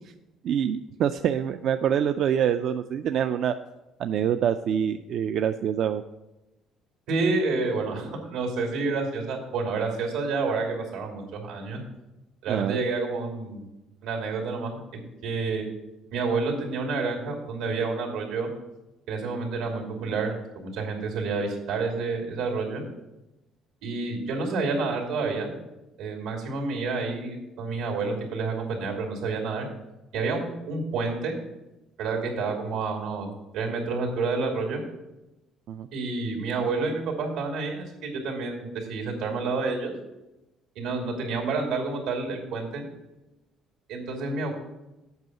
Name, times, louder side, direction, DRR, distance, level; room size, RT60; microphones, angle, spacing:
voice 1, 0.4-3.5 4.0-6.0 12.5-12.8 35.7-35.9, right 9 dB, 50° right, 8 dB, 0.3 m, -25 dB
voice 2, 7.1-11.8 12.4-13.7 14.0-14.8 15.2-15.6 16.1-18.5 19.1-22.8 23.8-25.5 26.0-29.7 30.1-31.3 32.0-33.3 33.5-34.8 35.9-39.9 40.8-42.8 43.9-44.5, right 4 dB, 85° right, 1 dB, 2.6 m, -29 dB
8.1 x 5.5 x 7.6 m, 0.99 s
cardioid pair, 160°, 0 cm